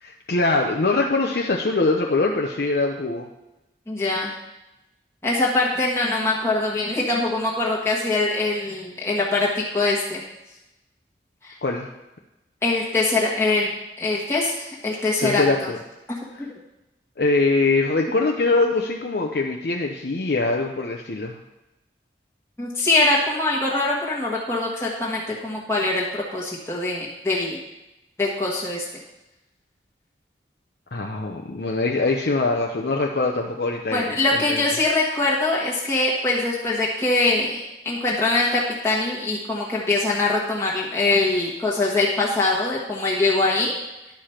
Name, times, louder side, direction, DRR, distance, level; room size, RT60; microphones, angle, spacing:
voice 1, 0.0-3.3 11.6-11.9 15.2-15.8 16.3-16.4 17.2-21.4 30.9-34.6, left 3 dB, 65° left, 1 dB, 0.6 m, -23 dB
voice 2, 3.9-4.3 5.2-10.2 11.4-11.5 12.6-13.7 14.0-15.4 16.1-16.5 22.6-27.6 28.2-28.8 33.9-43.7, left 2 dB, 15° left, -5 dB, 1.3 m, -23 dB
10.5 x 4.9 x 5.8 m, 0.96 s
head